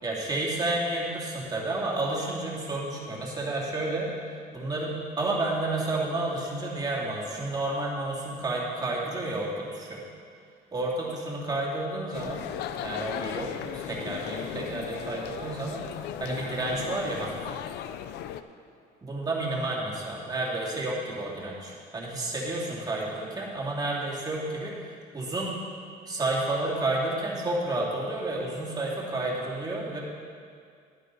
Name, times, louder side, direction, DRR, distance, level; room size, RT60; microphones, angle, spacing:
voice 1, 0.0-4.1 4.5-10.0 10.7-12.4 12.8-15.8 16.2-17.5 19.0-25.6 26.1-30.0, right 2 dB, 25° right, -4 dB, 2.5 m, -31 dB
sound 1, 12.1-18.4, left 10 dB, 80° left, 0.5 m, -36 dB
11.0 x 10.0 x 4.1 m, 2.2 s
cardioid pair, 110°, 17 cm